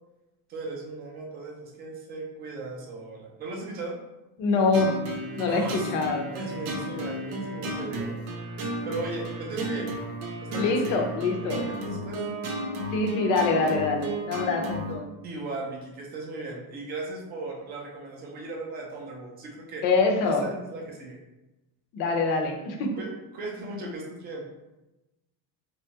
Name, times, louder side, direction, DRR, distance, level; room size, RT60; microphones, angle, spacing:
voice 1, 0.5-4.0 5.5-5.9 6.3-8.2 8.8-9.9 10.4-11.2 11.5-12.2 15.2-19.8 20.2-21.2 22.9-24.5, right 2 dB, 25° right, -1 dB, 0.4 m, -37 dB
voice 2, 4.4-4.9 5.4-6.3 10.6-11.6 12.9-15.2 19.8-20.5 21.9-22.9, left 3 dB, 50° left, 3 dB, 0.5 m, -25 dB
sound 1, 4.7-15.0, right 1 dB, 90° right, 0.8 m, -33 dB
2.9 x 2.3 x 2.7 m, 0.99 s
cardioid pair, 175°, 41 cm